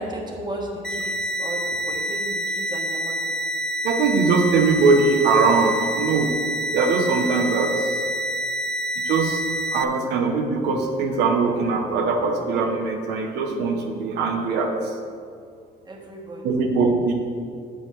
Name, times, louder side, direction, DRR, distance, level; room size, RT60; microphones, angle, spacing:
voice 1, 0.0-3.3 15.8-16.6, right 1 dB, 25° right, 0 dB, 1.4 m, -34 dB
sound 1, 0.8-9.8, equal, 5° left, 0.5 m, -27 dB
voice 2, 3.8-6.3 6.7-7.9 9.0-9.4 9.7-14.7 16.4-17.1, right 4 dB, 85° right, 2 dB, 1.0 m, -21 dB
6.9 x 5.4 x 6.2 m, 2.2 s
cardioid pair, 110°, 17 cm